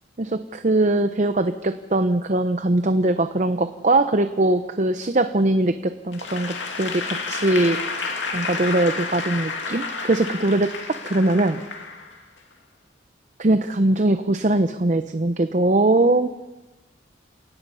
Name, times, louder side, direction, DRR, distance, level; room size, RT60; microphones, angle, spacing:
voice 1, 0.2-7.8 8.3-11.6 13.4-16.3, right 2 dB, 40° right, 9 dB, 0.7 m, -21 dB
Applause / Crowd, 6.1-12.4, left 4 dB, 85° left, 2.5 m, -30 dB
28.5 x 18.0 x 5.6 m, 1.1 s
head